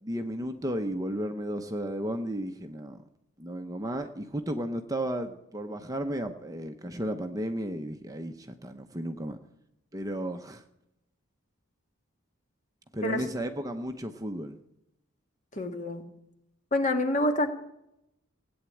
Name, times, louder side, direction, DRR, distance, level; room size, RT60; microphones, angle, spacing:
voice 1, 0.0-3.0 3.4-9.4 9.9-10.6 12.9-14.6, right 1 dB, 15° right, 6 dB, 0.8 m, -34 dB
voice 2, 15.5-16.0 16.7-17.5, left 1 dB, 35° left, 5 dB, 1.8 m, -27 dB
17.5 x 8.8 x 8.5 m, 0.83 s
head